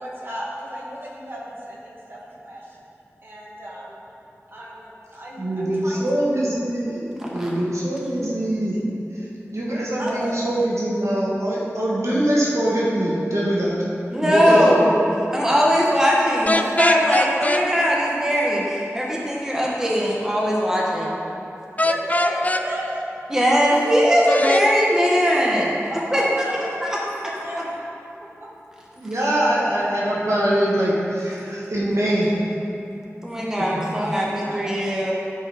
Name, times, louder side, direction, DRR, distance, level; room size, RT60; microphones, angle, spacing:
voice 1, 0.0-2.8 3.2-4.0 4.5-6.0 10.0-10.4 21.8-23.1 25.9-26.9 27.2-27.9 33.8-34.7, equal, 45° right, -6 dB, 2.2 m, -33 dB
voice 2, 5.4-8.8 9.5-13.8 14.2-14.8 28.9-32.3 33.6-33.8, right 1 dB, 70° right, -6 dB, 1.6 m, -23 dB
voice 3, 7.2-7.5 14.1-14.9 15.3-21.1 23.3-25.8 26.1-26.2 26.8-27.0 33.2-35.1, equal, 10° right, -4 dB, 1.4 m, -20 dB
sound 1, 16.5-17.6 21.8-22.6 24.3-24.7, left 2 dB, 30° left, 0.5 m, -21 dB
14.0 x 5.2 x 4.3 m, 2.8 s
wide cardioid pair, 50°, 5 cm